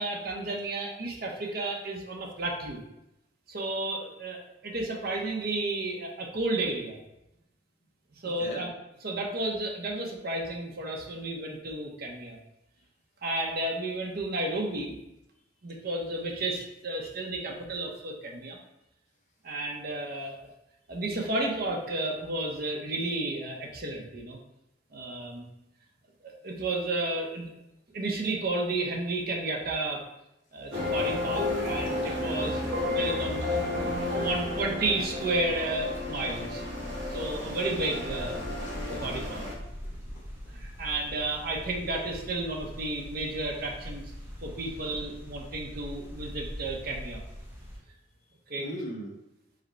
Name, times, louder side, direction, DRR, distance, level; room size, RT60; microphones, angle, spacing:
voice 1, 0.0-2.8 3.5-7.0 8.1-8.7 9.0-12.4 13.2-14.9 15.6-18.6 19.4-20.4 20.9-24.4 24.9-25.5 26.2-27.5 27.9-30.0 30.5-33.5 34.1-36.6 37.1-38.5 38.9-39.5 40.5-44.1 44.4-47.2 48.5-48.6, right 2 dB, 55° right, 1 dB, 0.7 m, -32 dB
voice 2, 8.2-8.6 38.6-38.7 39.8-40.2 48.6-49.2, equal, 40° left, 1 dB, 0.6 m, -41 dB
sound 1, 30.7-39.5, left 2 dB, 90° right, 1.0 m, -32 dB
sound 2, 33.7-47.8, equal, 10° right, 0.9 m, -43 dB
4.9 x 2.2 x 4.3 m, 0.87 s
head